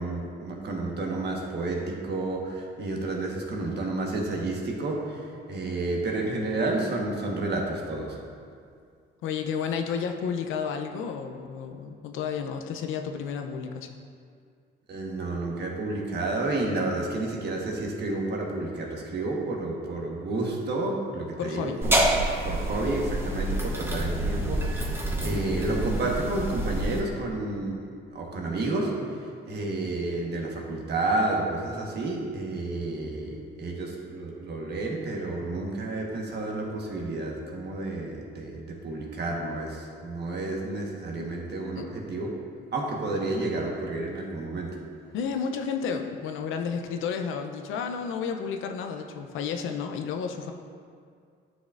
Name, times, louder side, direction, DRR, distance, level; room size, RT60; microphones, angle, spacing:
voice 1, 0.0-8.2 14.9-22.0 22.4-42.3 42.7-44.8, right 2 dB, 55° right, 0 dB, 1.3 m, -30 dB
voice 2, 9.2-13.9 21.4-21.8 41.2-41.3 41.7-41.9 45.1-50.5, left 6 dB, 85° left, 5 dB, 0.6 m, -31 dB
sound 1, 21.8-27.0, right 1 dB, 10° right, 0.9 m, -27 dB
9.8 x 6.1 x 2.5 m, 2.2 s
cardioid pair, 90°, 20 cm